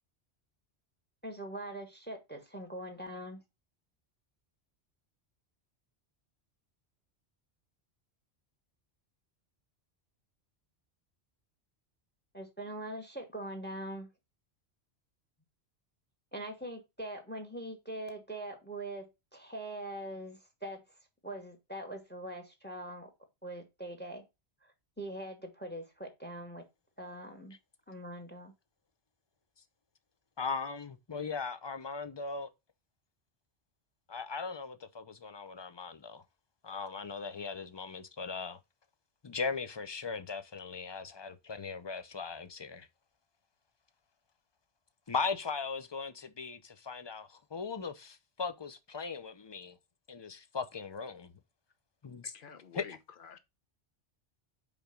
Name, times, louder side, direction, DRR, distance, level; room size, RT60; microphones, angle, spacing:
voice 1, 1.2-3.4 12.3-14.1 16.3-23.1 23.4-24.2 24.6-26.7 27.0-27.6 27.9-28.5, right 1 dB, 10° left, 1.3 m, -42 dB
voice 2, 30.4-32.5 34.1-36.2 36.6-38.6 39.2-42.9 45.1-49.8 50.1-51.3 52.0-52.3 52.8-52.9, left 5 dB, 30° left, 0.6 m, -38 dB
voice 3, 52.3-53.4, left 6 dB, 55° left, 1.0 m, -50 dB
5.1 x 4.7 x 5.1 m
omnidirectional pair, 1.1 m